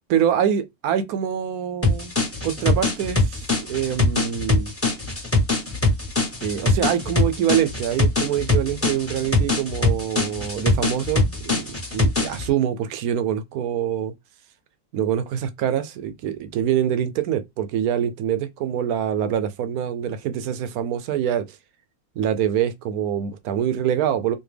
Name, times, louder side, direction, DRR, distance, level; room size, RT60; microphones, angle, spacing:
voice 1, 0.1-2.1 2.4-4.7 6.4-14.1 14.9-21.5 22.2-24.4, right 9 dB, 80° right, 1.1 m, -25 dB
sound 1, 1.8-12.5, left 2 dB, 10° left, 1.0 m, -22 dB
4.2 x 2.5 x 3.3 m
omnidirectional pair, 1.6 m